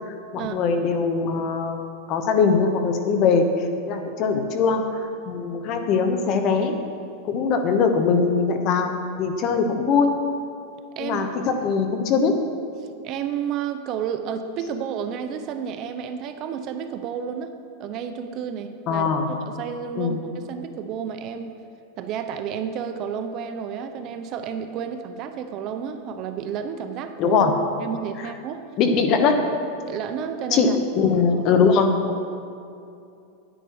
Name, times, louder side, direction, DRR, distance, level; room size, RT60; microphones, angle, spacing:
voice 1, 0.3-3.4 3.9-6.7 7.2-10.1 11.0-12.3 18.9-19.3 20.0-20.2 27.2-27.6 28.8-29.4 30.5-31.9, left 5 dB, 40° left, 6 dB, 1.0 m, -21 dB
voice 2, 13.0-17.5 17.8-21.5 22.0-27.4 27.8-28.6 29.8-30.8 31.0-31.1, right 7 dB, 40° right, 8 dB, 0.6 m, -31 dB
10.0 x 9.8 x 4.8 m, 2.5 s
supercardioid pair, 150°, 0 cm